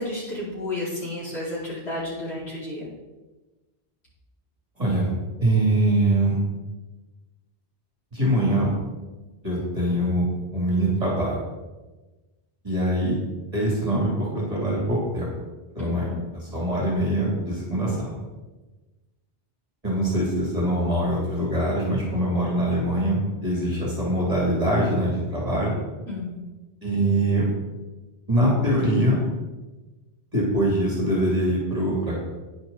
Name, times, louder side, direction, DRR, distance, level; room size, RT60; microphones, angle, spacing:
voice 1, 0.0-2.9 15.8-15.9 26.1-26.4, left 1 dB, 80° left, -7 dB, 4.8 m, -31 dB
voice 2, 4.8-5.1 5.4-6.4 8.1-8.7 9.4-10.3 10.5-11.4 12.6-13.2 13.5-15.3 15.7-18.1 19.8-25.7 26.8-27.5 28.3-29.2 30.3-32.2, right 1 dB, 35° right, -5 dB, 3.4 m, -23 dB
10.5 x 10.0 x 4.2 m, 1.2 s
omnidirectional pair, 1.1 m